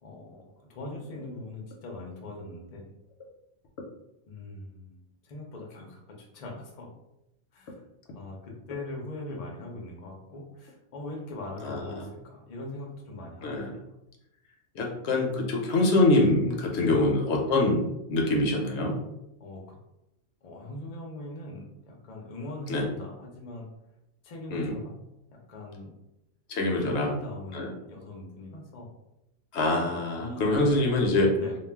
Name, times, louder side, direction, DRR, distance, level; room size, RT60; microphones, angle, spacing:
voice 1, 0.0-2.8 4.3-6.9 7.5-7.8 8.1-14.0 16.8-17.1 19.4-19.8 20.4-23.7 24.2-24.9 25.3-26.0 26.8-28.9 29.8-31.0 31.4-31.6, left 1 dB, 45° left, 0 dB, 0.5 m, -40 dB
voice 2, 11.6-12.0 13.4-13.7 14.7-19.0 22.7-22.9 24.5-24.8 26.5-27.1 27.5-27.7 29.5-31.3, left 2 dB, 70° left, 0 dB, 0.8 m, -25 dB
2.3 x 2.2 x 3.3 m, 0.88 s
omnidirectional pair, 1.2 m